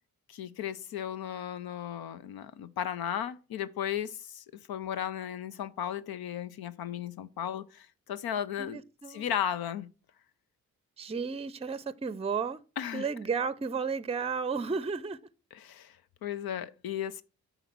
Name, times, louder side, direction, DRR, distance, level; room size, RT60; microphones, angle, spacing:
voice 1, 0.3-8.8 9.1-9.9 12.8-13.1 15.5-16.0 16.2-17.2, left 9 dB, 85° left, 0.6 m, -35 dB
voice 2, 8.6-9.2 11.0-12.6 12.9-15.2, right 5 dB, 15° right, 0.5 m, -33 dB
9.2 x 4.0 x 5.9 m
cardioid pair, 50°, 36 cm